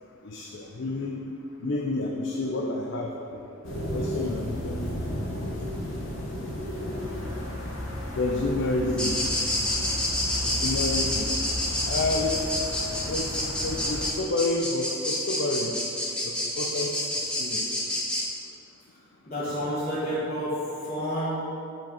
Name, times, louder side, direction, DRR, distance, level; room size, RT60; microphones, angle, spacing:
voice 1, 0.2-1.2 1.6-3.1 3.9-4.9 8.1-9.3 10.4-11.3 11.9-12.4 13.1-13.3 13.6-15.7 16.2-16.9 17.4-17.6, left 2 dB, 60° left, 0 dB, 0.5 m, -29 dB
sound 1, 3.6-14.1, left 1 dB, 80° left, 1.2 m, -34 dB
sound 2, 9.0-18.2, left 1 dB, 5° left, 0.9 m, -28 dB
voice 2, 19.3-21.4, equal, 35° left, -11 dB, 1.3 m, -30 dB
6.0 x 4.5 x 5.7 m, 2.8 s
head